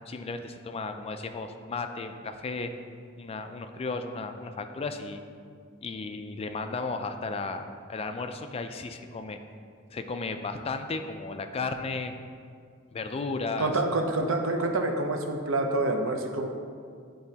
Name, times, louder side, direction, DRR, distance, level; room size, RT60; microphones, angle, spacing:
voice 1, 0.1-2.7 3.2-5.2 5.8-9.4 9.9-12.1 12.9-13.7, left 3 dB, 30° left, 7 dB, 0.3 m, -34 dB
voice 2, 13.6-16.5, right 2 dB, 80° right, 4 dB, 0.6 m, -27 dB
10.0 x 3.8 x 2.8 m, 2.2 s
head